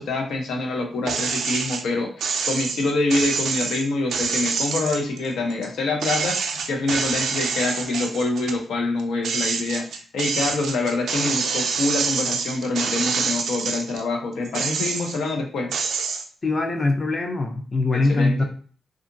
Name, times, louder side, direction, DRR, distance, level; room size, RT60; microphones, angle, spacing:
voice 1, 0.0-15.8 17.9-18.4, left 2 dB, 90° left, 2 dB, 0.6 m, -26 dB
sound 1, 1.1-1.8 2.2-5.7 6.0-8.6 9.0-14.0 14.4-15.3 15.7-16.2, right 5 dB, 85° right, 0.3 m, -26 dB
voice 2, 16.4-18.4, left 3 dB, 30° left, 4 dB, 0.4 m, -22 dB
2.8 x 2.4 x 2.5 m, 0.43 s
wide cardioid pair, 135°, 0 cm